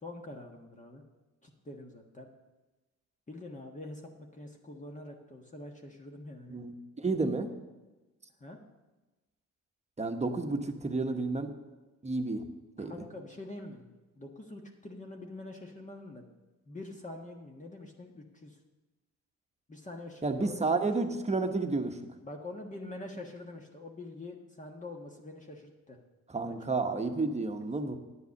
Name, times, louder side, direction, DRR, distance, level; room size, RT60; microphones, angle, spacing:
voice 1, 0.0-1.0 1.4-2.3 3.3-6.6 8.4-8.6 12.8-13.8 14.2-16.3 16.7-18.6 19.7-20.6 22.2-26.0 26.4-26.5, left 2 dB, 25° left, 1 dB, 1.4 m, -45 dB
voice 2, 7.0-7.5 10.0-11.5 12.0-12.5 12.8-13.0 20.2-22.0 26.3-28.0, right 3 dB, 20° right, 6 dB, 1.1 m, -31 dB
9.8 x 8.1 x 6.4 m, 1.1 s
cardioid pair, 90°, 30 cm